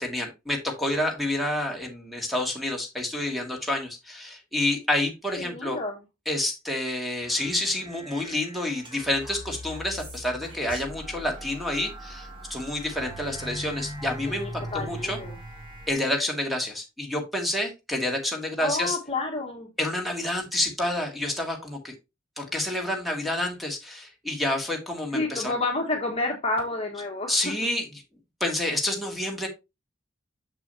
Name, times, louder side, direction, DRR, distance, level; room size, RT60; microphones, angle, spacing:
voice 1, 0.0-5.8 6.3-15.2 15.9-19.0 19.8-21.9 22.4-25.5 27.3-27.9 28.4-29.5, left 1 dB, ahead, 2 dB, 1.9 m, -28 dB
voice 2, 5.4-6.0 14.3-15.4 18.6-19.7 25.1-27.5, left 2 dB, 30° left, 1 dB, 1.5 m, -30 dB
sound 1, 7.2-15.9, right 1 dB, 25° right, 2.0 m, -40 dB
6.9 x 6.7 x 2.7 m, 0.23 s
head